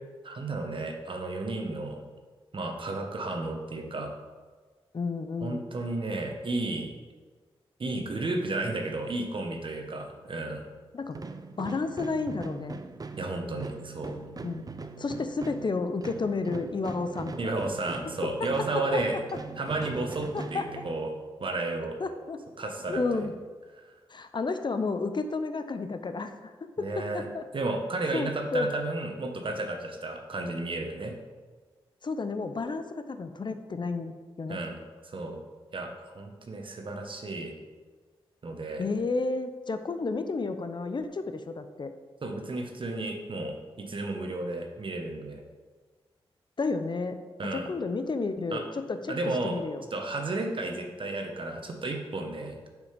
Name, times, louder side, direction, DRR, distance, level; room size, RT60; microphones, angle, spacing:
voice 1, 0.2-2.0 2.5-4.1 5.4-6.9 7.8-10.6 13.2-14.1 17.4-19.2 19.6-21.1 21.4-22.0 22.6-23.3 23.8-23.9 26.8-27.3 27.5-31.1 34.5-35.4 35.7-37.5 38.4-38.8 42.2-45.4 47.4-47.7 48.5-48.6 49.1-49.6 49.9-52.6, right 2 dB, 55° right, 3 dB, 1.2 m, -33 dB
voice 2, 4.9-5.7 10.9-11.2 11.6-12.8 14.4-14.6 15.0-17.6 18.7-19.0 20.3-20.7 22.0-22.4 22.9-23.3 24.1-27.4 28.1-28.7 32.0-34.6 38.8-41.9 46.6-47.2 47.5-49.1 49.4-49.9, left 3 dB, 50° left, 9 dB, 0.6 m, -31 dB
sound 1, 11.1-21.3, right 3 dB, 40° right, 0.6 m, -41 dB
6.6 x 5.2 x 5.2 m, 1.4 s
cardioid pair, 55°, 10 cm